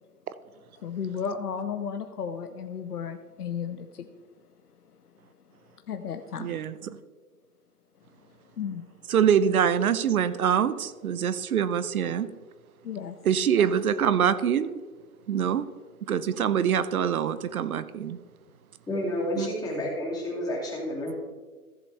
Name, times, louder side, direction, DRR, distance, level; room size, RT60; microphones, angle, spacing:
voice 1, 0.8-4.1 5.9-7.0 8.5-8.8 12.8-13.2, left 7 dB, 80° left, 8 dB, 0.8 m, -34 dB
voice 2, 6.4-7.0 9.1-12.3 13.3-14.8 15.3-15.7 16.0-18.2 19.4-19.5 21.1-21.2, right 8 dB, 70° right, 14 dB, 0.8 m, -24 dB
voice 3, 18.9-21.1, left 1 dB, 10° left, -4 dB, 2.5 m, -30 dB
14.5 x 7.6 x 3.3 m, 1.4 s
hypercardioid pair, 130°, 45 cm